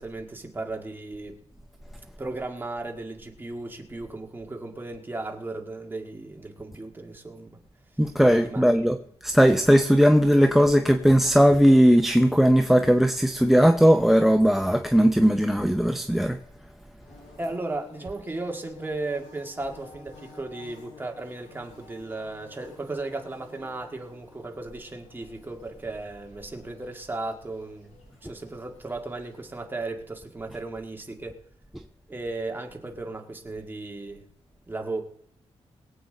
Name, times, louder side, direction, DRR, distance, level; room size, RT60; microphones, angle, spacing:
voice 1, 0.0-1.4 2.2-7.6 8.4-8.9 17.4-31.4 32.1-34.3 34.7-35.0, right 2 dB, 20° right, 1.8 m, -35 dB
voice 2, 8.0-9.0 9.2-16.4, equal, ahead, 0.6 m, -18 dB
Bird / Buzz, 17.0-29.6, left 4 dB, 80° left, 5.0 m, -53 dB
22.5 x 8.4 x 3.9 m
wide cardioid pair, 155°, 11 cm